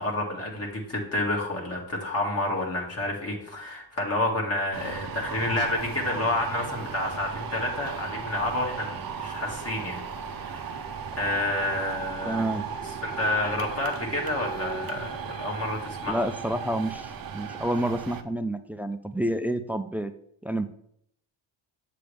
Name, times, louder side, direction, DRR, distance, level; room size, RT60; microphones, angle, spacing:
voice 1, 0.0-10.8 11.2-12.4 13.0-16.2, left 2 dB, 30° left, -2 dB, 2.1 m, -29 dB
sound 1, 4.7-18.2, right 6 dB, 45° right, 0.8 m, -36 dB
voice 2, 12.3-12.7 16.1-20.1 20.4-20.7, right 1 dB, 5° right, 11 dB, 0.3 m, -29 dB
7.5 x 6.9 x 3.4 m, 0.70 s
cardioid pair, 95°, 48 cm